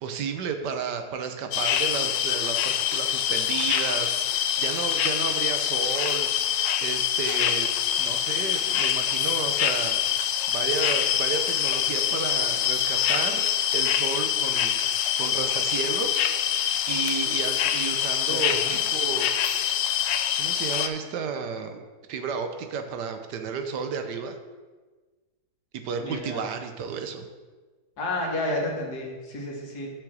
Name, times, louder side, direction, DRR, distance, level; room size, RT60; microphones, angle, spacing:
voice 1, 0.0-6.3 6.8-10.1 10.5-13.4 13.7-16.2 16.9-19.4 20.4-21.8 22.1-24.4 25.8-27.2, right 6 dB, 75° right, 6 dB, 1.3 m, -32 dB
sound 1, 1.5-20.9, left 10 dB, 85° left, 1.3 m, -25 dB
voice 2, 18.3-18.8 26.0-26.4 28.0-29.9, left 1 dB, 60° left, -1 dB, 2.2 m, -31 dB
6.8 x 6.6 x 6.3 m, 1.3 s
omnidirectional pair, 1.9 m